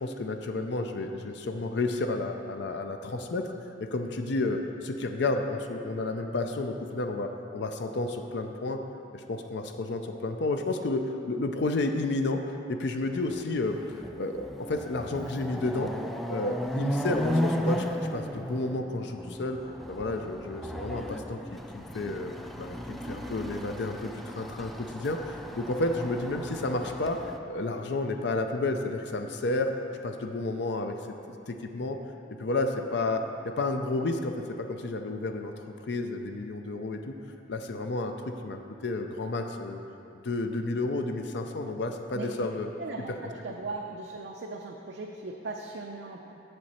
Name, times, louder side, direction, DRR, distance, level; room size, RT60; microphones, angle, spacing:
voice 1, 0.0-3.5 3.8-8.8 9.1-13.8 14.2-15.9 16.3-17.9 18.1-19.6 19.9-22.3 22.6-27.2 27.5-29.7 30.0-31.0 31.3-32.0 32.4-37.2 37.5-39.8 40.2-42.7 43.1-43.2, left 2 dB, 70° left, 5 dB, 0.5 m, -31 dB
Chatter / Car passing by / Motorcycle, 13.3-13.4 13.8-27.4, equal, ahead, 0.3 m, -35 dB
voice 2, 42.1-42.5 42.8-46.3, right 3 dB, 75° right, 0 dB, 0.5 m, -38 dB
7.7 x 7.0 x 4.3 m, 2.7 s
head